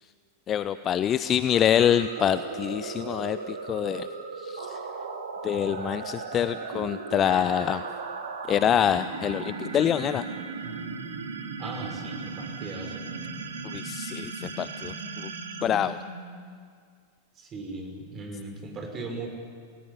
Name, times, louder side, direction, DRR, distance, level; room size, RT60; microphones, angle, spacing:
voice 1, 0.5-4.1 4.4-4.8 5.4-7.8 8.5-10.3 13.6-15.3 15.6-16.0, left 9 dB, 30° left, 13 dB, 0.6 m, -26 dB
sound 1, 1.5-16.6, right 4 dB, 70° right, 2.4 m, -37 dB
voice 2, 11.6-13.0 17.4-19.3, right 3 dB, 25° right, 3 dB, 5.7 m, -38 dB
29.0 x 19.0 x 9.7 m, 2.2 s
figure-of-eight pair, 90°, 0 cm